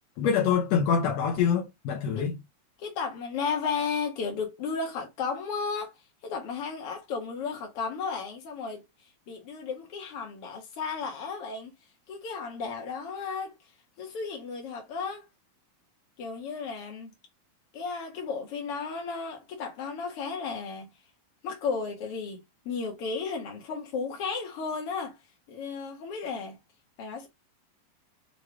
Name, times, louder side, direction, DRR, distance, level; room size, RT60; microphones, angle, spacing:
voice 1, 0.2-2.4, left 7 dB, 75° left, 1.6 m, -25 dB
voice 2, 2.8-6.0 6.2-8.8 9.3-11.7 12.1-13.5 14.0-15.3 16.2-17.1 17.7-20.9 21.4-25.2 25.5-26.6 27.0-27.3, left 5 dB, 55° left, 1.9 m, -34 dB
6.6 x 3.4 x 2.3 m
omnidirectional pair, 4.1 m